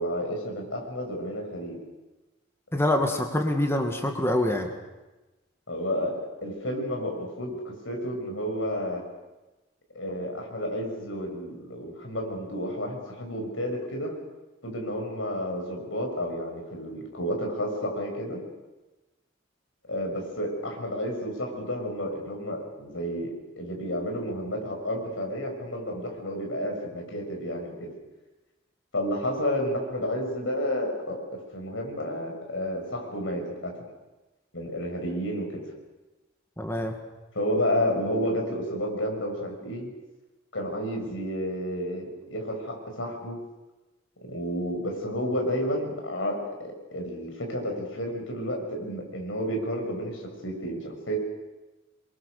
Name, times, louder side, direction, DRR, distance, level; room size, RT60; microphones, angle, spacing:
voice 1, 0.0-1.8 5.7-9.0 9.9-14.1 14.6-18.4 19.9-27.9 28.9-33.7 34.5-35.7 37.3-39.9 40.5-43.4 44.2-51.2, equal, 85° left, 2 dB, 6.7 m, -31 dB
voice 2, 2.7-4.7 36.6-37.0, left 1 dB, 15° left, 3 dB, 2.2 m, -25 dB
27.5 x 23.0 x 6.7 m, 1.1 s
head